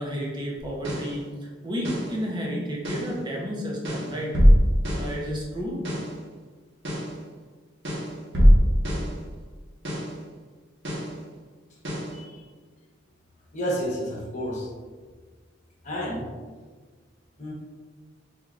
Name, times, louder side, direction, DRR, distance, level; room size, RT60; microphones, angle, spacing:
voice 1, 0.0-4.4 5.0-5.8, equal, 25° right, -3 dB, 0.8 m, -31 dB
sound 1, 0.6-1.2 1.8-2.2 2.8-3.2 3.8-5.2 5.8-6.2 6.8-7.2 7.8-9.2 9.8-10.2 10.8-11.2 11.8-12.2, equal, 65° right, 1.1 m, -22 dB
voice 2, 12.1-12.4 13.5-14.7 15.8-16.3 17.4-17.5, equal, 40° left, -4 dB, 1.1 m, -30 dB
4.3 x 3.6 x 2.4 m, 1.4 s
head